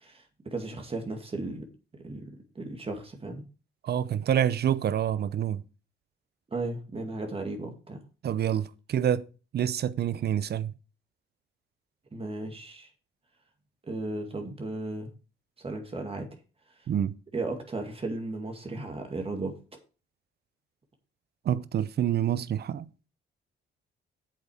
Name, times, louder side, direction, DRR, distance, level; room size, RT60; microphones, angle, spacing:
voice 1, 0.0-1.7 2.0-3.4 6.5-8.0 12.1-12.9 13.9-15.1 15.6-16.3 16.7-16.9 17.3-19.5, right 2 dB, 30° right, 2.2 m, -35 dB
voice 2, 3.8-5.6 8.2-9.3 9.5-10.7 16.9-17.2 21.4-23.1, right 10 dB, 55° right, 0.7 m, -27 dB
8.1 x 7.1 x 4.9 m
cardioid pair, 90°, 20 cm